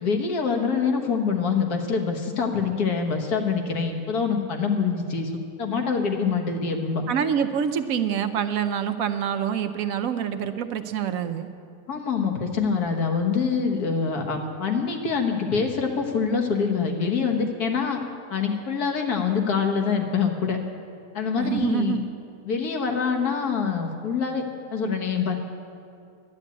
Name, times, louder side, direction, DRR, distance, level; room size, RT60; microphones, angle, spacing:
voice 1, 0.0-5.3 5.6-7.0 11.9-18.0 18.3-20.6 21.2-22.0 22.5-24.4 24.7-25.4, left 5 dB, 85° left, 3 dB, 1.8 m, -25 dB
voice 2, 7.1-11.5 21.3-22.1, right 8 dB, 70° right, 8 dB, 1.0 m, -26 dB
11.5 x 9.6 x 8.2 m, 2.4 s
omnidirectional pair, 1.6 m